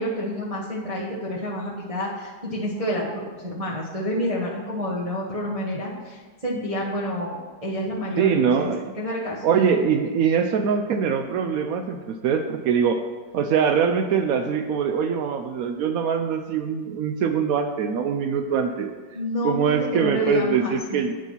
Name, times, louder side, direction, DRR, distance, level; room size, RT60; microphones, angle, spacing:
voice 1, 0.0-7.4 7.6-8.7 9.0-9.4 19.1-21.0, equal, 20° right, -6 dB, 1.1 m, -29 dB
voice 2, 8.2-8.9 9.4-13.1 13.3-18.9 19.4-21.1, right 6 dB, 90° right, 7 dB, 0.7 m, -23 dB
9.0 x 5.4 x 5.7 m, 1.4 s
omnidirectional pair, 2.1 m